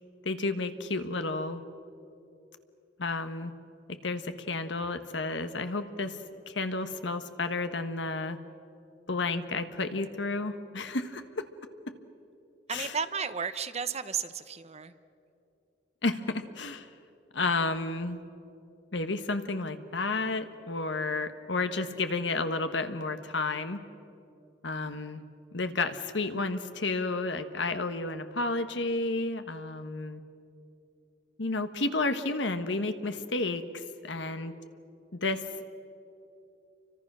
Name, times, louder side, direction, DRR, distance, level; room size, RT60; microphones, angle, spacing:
voice 1, 0.2-1.6 3.0-3.5 3.9-6.2 6.5-8.4 9.1-11.5 11.9-12.0 12.7-13.0 16.0-16.9 17.3-18.2 18.9-23.8 24.6-25.2 25.5-30.2 31.4-34.5 35.1-35.5, left 3 dB, 75° left, 9 dB, 1.4 m, -31 dB
voice 2, 12.7-14.9, right 6 dB, 35° right, 12 dB, 0.9 m, -33 dB
29.5 x 24.5 x 6.2 m, 2.7 s
head